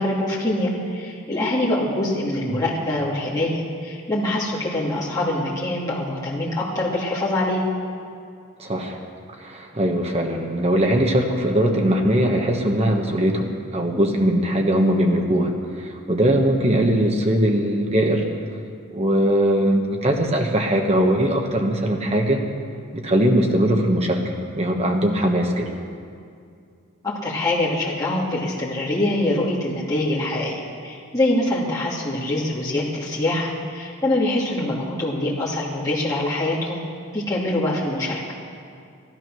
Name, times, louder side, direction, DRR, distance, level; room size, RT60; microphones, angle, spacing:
voice 1, 0.0-7.6 27.0-36.8 37.1-38.2, left 1 dB, 15° left, -7 dB, 2.7 m, -24 dB
voice 2, 8.6-9.0 9.4-18.3 18.9-22.4 22.9-25.7, right 1 dB, 30° right, 2 dB, 1.2 m, -20 dB
13.5 x 12.5 x 6.2 m, 2.4 s
head